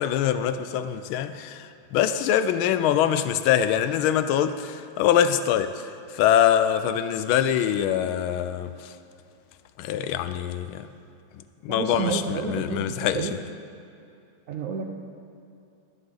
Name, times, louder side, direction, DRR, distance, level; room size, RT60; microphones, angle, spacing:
voice 1, 0.0-5.8 6.1-8.9 9.8-10.9 11.6-13.3, left 10 dB, 90° left, 1.4 m, -24 dB
voice 2, 11.7-12.8 13.1-13.3 14.5-14.8, right 5 dB, 65° right, 0.8 m, -29 dB
20.5 x 7.9 x 3.9 m
omnidirectional pair, 2.2 m